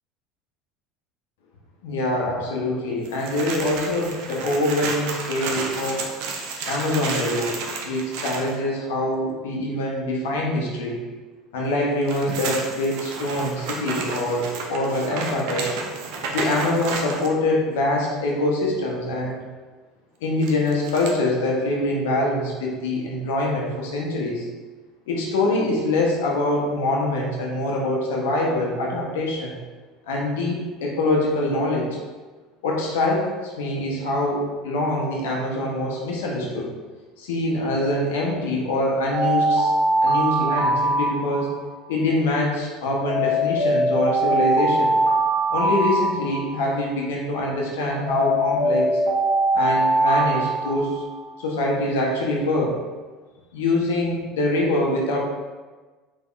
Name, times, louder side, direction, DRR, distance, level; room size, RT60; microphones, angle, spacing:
voice 1, 1.8-6.0 6.6-7.6 7.8-11.0 11.5-15.7 16.3-19.4 20.2-24.5 25.1-29.6 30.1-31.9 32.6-36.7 37.2-39.7 40.0-41.5 41.9-45.0 45.5-49.0 49.5-51.0 51.4-52.8 53.5-55.2, left 1 dB, 75° left, -2 dB, 0.6 m, -24 dB
sound 1, 3.0-8.6 11.8-17.3 20.4-21.1, right 4 dB, 65° right, 0.4 m, -31 dB
Alarm, 39.1-41.7 43.1-46.7 48.1-51.3, right 1 dB, 85° right, 0.8 m, -22 dB
3.5 x 3.0 x 2.3 m, 1.3 s
hypercardioid pair, 70°, 0 cm